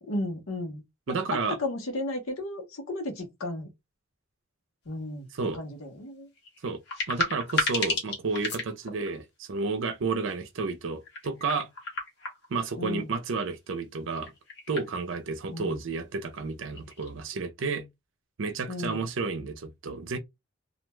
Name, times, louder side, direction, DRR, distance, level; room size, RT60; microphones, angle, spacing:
voice 1, 0.0-3.7 4.9-5.3 5.5-6.3 12.8-13.1 15.5-15.8 18.7-19.0, left 1 dB, 80° left, 0.9 m, -34 dB
voice 2, 1.1-1.6 5.3-5.6 6.6-6.8 7.1-11.7 12.5-14.3 14.7-17.9 18.4-20.2, right 4 dB, 60° right, 0.5 m, -31 dB
sound 1, 4.9-5.0 6.4-9.1 11.0-12.7 14.2-14.9 15.2-15.3 16.3-16.4 16.7-17.1, left 2 dB, 55° left, 1.2 m, -33 dB
2.4 x 2.2 x 3.0 m
head